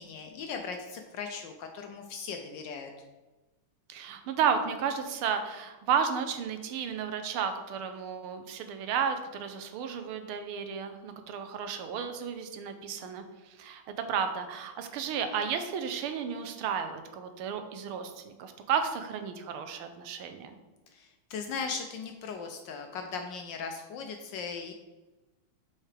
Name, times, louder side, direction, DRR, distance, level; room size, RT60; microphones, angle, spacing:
voice 1, 0.0-2.9 20.9-24.7, left 5 dB, 75° left, 4 dB, 1.1 m, -38 dB
voice 2, 3.9-20.6, right 7 dB, 80° right, 7 dB, 1.5 m, -33 dB
7.2 x 4.9 x 3.3 m, 1.1 s
omnidirectional pair, 2.4 m